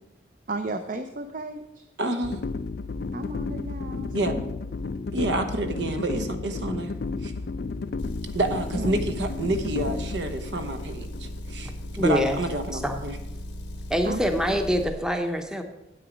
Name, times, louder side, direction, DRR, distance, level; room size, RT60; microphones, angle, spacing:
voice 1, 0.5-1.8 3.1-4.5 8.8-8.9 14.0-14.2, right 2 dB, 45° right, 7 dB, 0.5 m, -34 dB
voice 2, 2.0-2.4 4.1-4.4 5.1-6.9 7.2-7.3 8.3-11.7 12.0-13.2, right 2 dB, 80° right, 8 dB, 0.9 m, -28 dB
sound 1, 2.2-12.3, left 3 dB, 60° left, 0.4 m, -33 dB
Motor vehicle (road) / Engine, 8.0-14.9, left 1 dB, 90° left, 1.1 m, -37 dB
voice 3, 12.0-12.4 12.8-13.0 13.9-15.6, equal, 5° right, 6 dB, 0.7 m, -25 dB
9.1 x 8.0 x 5.0 m, 0.94 s
head